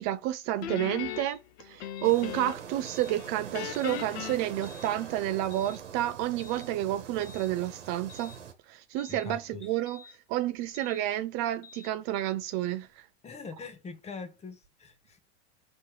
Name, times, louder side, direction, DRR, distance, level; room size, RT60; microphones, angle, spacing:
voice 1, 0.0-8.3 8.7-10.0 10.3-13.1, right 14 dB, 40° right, 0.4 m, -30 dB
Guitar, 0.6-2.8 3.1-5.4, left 12 dB, 75° left, 0.5 m, -39 dB
sound 1, 1.1-1.4 2.0-2.3 2.9-3.1 3.7-4.0 4.6-4.9 5.5-5.8 6.4-6.7 7.2-7.5 8.1-8.4 9.0-9.3 9.9-10.1 10.7-11.0 11.6-11.9, left 6 dB, 45° left, 1.0 m, -51 dB
sound 2, 2.0-8.5, right 7 dB, 80° right, 1.2 m, -44 dB
voice 2, 9.1-9.7 13.2-15.2, left 4 dB, 20° left, 0.7 m, -43 dB
4.3 x 3.1 x 3.0 m
hypercardioid pair, 90°, 35 cm